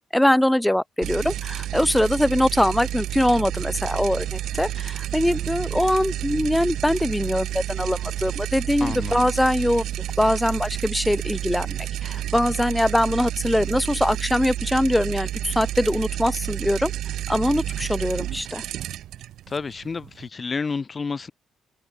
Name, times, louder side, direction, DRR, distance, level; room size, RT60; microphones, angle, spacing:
voice 1, 0.1-9.9 10.2-16.9 17.3-18.6, left 1 dB, 5° left, 1.3 m, -22 dB
sound 1, 1.0-20.3, right 13 dB, 80° right, 1.7 m, -30 dB
voice 2, 8.8-9.3 19.5-21.3, left 4 dB, 35° left, 5.2 m, -30 dB
open air
cardioid pair, 90°, 0 cm